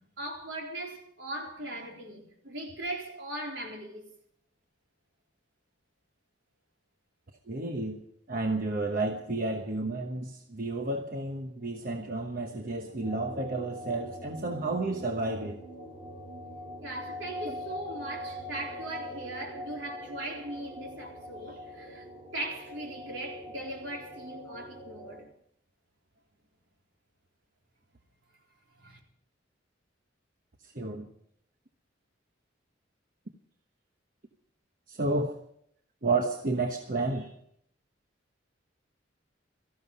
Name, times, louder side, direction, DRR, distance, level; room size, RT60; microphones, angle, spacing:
voice 1, 0.0-4.1 16.8-22.1 22.3-25.3 28.8-29.0, right 1 dB, 70° right, 4.1 m, -39 dB
voice 2, 7.5-8.0 8.3-15.6 17.4-17.6 30.7-31.1 34.9-35.4 36.0-37.3, right 2 dB, 45° right, 1.1 m, -31 dB
sound 1, 13.0-25.2, left 1 dB, 25° right, 4.1 m, -43 dB
18.0 x 14.0 x 5.5 m
head